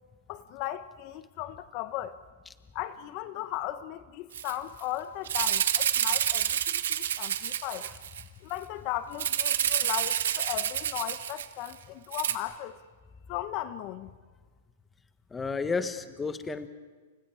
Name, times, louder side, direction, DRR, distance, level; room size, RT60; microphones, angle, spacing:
voice 1, 0.3-2.2 2.7-7.9 8.4-12.8 13.3-14.1, left 13 dB, 40° left, 0.9 m, -36 dB
Rattle (instrument), 4.3-4.5 4.8-4.9 5.3-8.2 9.2-11.7 12.1-12.3, right 10 dB, 80° right, 1.9 m, -28 dB
voice 2, 15.3-16.7, left 4 dB, 10° left, 1.2 m, -31 dB
30.0 x 30.0 x 4.9 m
hypercardioid pair, 145°, 0 cm